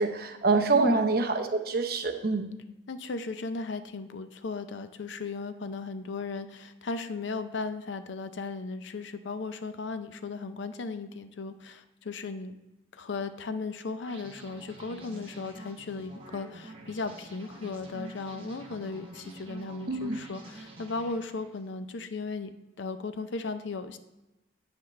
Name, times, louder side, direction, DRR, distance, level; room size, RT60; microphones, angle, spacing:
voice 1, 0.0-2.5 19.9-20.2, right 3 dB, 50° right, 5 dB, 0.7 m, -26 dB
voice 2, 0.7-1.1 2.9-12.6 12.9-24.0, left 3 dB, 70° left, 10 dB, 0.5 m, -36 dB
sound 1, 14.0-21.7, right 2 dB, 30° right, 1.1 m, -47 dB
8.7 x 7.7 x 3.2 m, 0.99 s
head